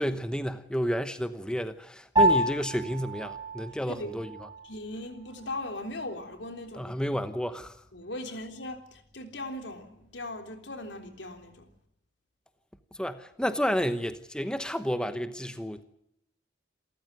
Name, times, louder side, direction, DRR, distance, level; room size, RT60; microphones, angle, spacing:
voice 1, 0.0-4.3 6.8-7.8 13.0-15.8, equal, 5° left, 1.0 m, -31 dB
Piano, 2.2-11.8, right 1 dB, 25° right, 5.0 m, -32 dB
voice 2, 4.6-7.2 7.9-11.7, left 1 dB, 80° left, 3.6 m, -39 dB
28.0 x 14.0 x 9.4 m
head